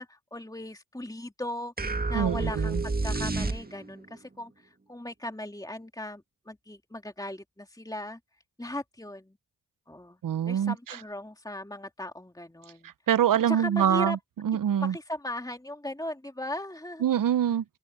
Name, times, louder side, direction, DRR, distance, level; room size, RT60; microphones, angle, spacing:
voice 1, 0.0-8.2 8.6-9.3 9.9-10.2 10.5-12.9 13.5-14.2 14.8-17.0, left 1 dB, 10° left, 2.7 m, -38 dB
sound 1, 1.8-4.0, right 3 dB, 25° right, 1.8 m, -30 dB
voice 2, 2.1-2.8 10.2-10.7 12.8-14.2 14.4-14.9 17.0-17.6, right 9 dB, 65° right, 0.7 m, -25 dB
open air
supercardioid pair, 40°, 35 cm